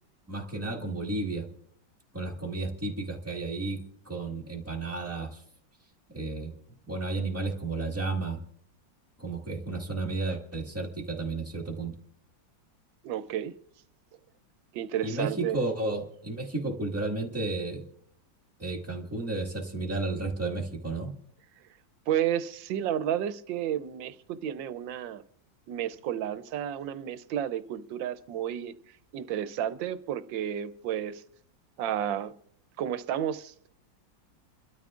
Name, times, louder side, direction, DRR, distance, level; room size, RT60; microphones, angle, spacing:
voice 1, 0.3-1.5 2.1-5.4 6.1-8.4 9.2-12.0 15.0-17.8 18.6-21.1, right 3 dB, 10° right, -1 dB, 1.6 m, -32 dB
voice 2, 13.0-13.5 14.7-15.6 22.1-25.2 25.7-28.7 29.1-31.2 31.8-32.3 32.8-33.7, right 10 dB, 85° right, 13 dB, 1.4 m, -31 dB
29.5 x 13.0 x 2.5 m, 0.66 s
omnidirectional pair, 2.0 m